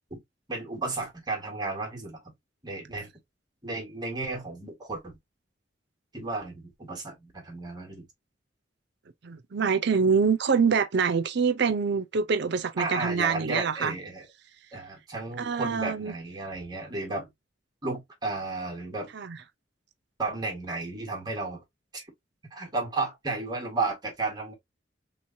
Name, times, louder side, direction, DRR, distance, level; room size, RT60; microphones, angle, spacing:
voice 1, 0.5-2.2 2.6-3.1 3.6-5.2 6.1-8.1 12.8-14.3 14.7-17.3 17.8-19.1 20.2-21.6 21.9-22.1 22.5-24.5, right 3 dB, 25° right, 1.5 m, -33 dB
voice 2, 9.2-13.9 15.4-16.1 19.1-19.4, right 5 dB, 65° right, 0.6 m, -25 dB
3.5 x 3.1 x 2.6 m
head